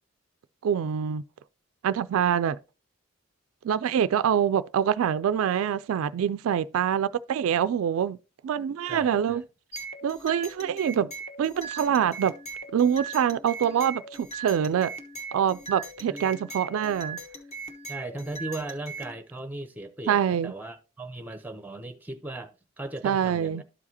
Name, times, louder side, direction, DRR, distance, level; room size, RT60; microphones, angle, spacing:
voice 1, 0.6-1.2 1.8-2.6 3.6-8.2 8.4-9.4 10.0-11.1 11.4-12.3 12.7-14.9 15.3-17.2 20.1-20.5 23.0-23.6, right 8 dB, 75° right, 0.3 m, -25 dB
voice 2, 8.9-9.4 16.1-16.3 17.9-22.5 22.8-23.6, right 2 dB, 10° right, 0.6 m, -37 dB
sound 1, 9.7-19.2, right 3 dB, 30° left, 1.1 m, -40 dB
12.5 x 4.8 x 2.7 m
head